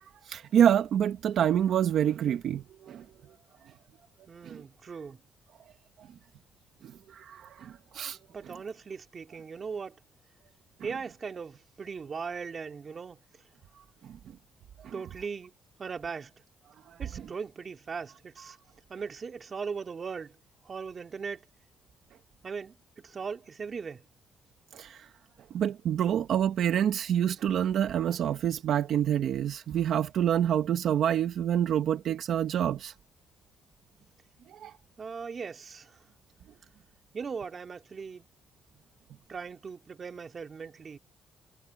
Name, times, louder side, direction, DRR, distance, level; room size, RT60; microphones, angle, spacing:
voice 1, 0.0-3.0 4.4-4.6 7.1-8.2 14.8-14.9 24.7-25.1 25.5-32.9 34.5-34.7, right 9 dB, 70° right, 1.3 m, -27 dB
voice 2, 4.3-5.2 8.3-10.0 10.8-13.2 14.9-15.5 15.8-16.3 17.0-18.6 18.9-20.4 20.6-21.4 22.4-22.7 23.0-24.0 35.0-36.0 37.1-38.3 39.3-41.0, right 5 dB, 40° right, 3.0 m, -39 dB
cardioid pair, 90°, 0 cm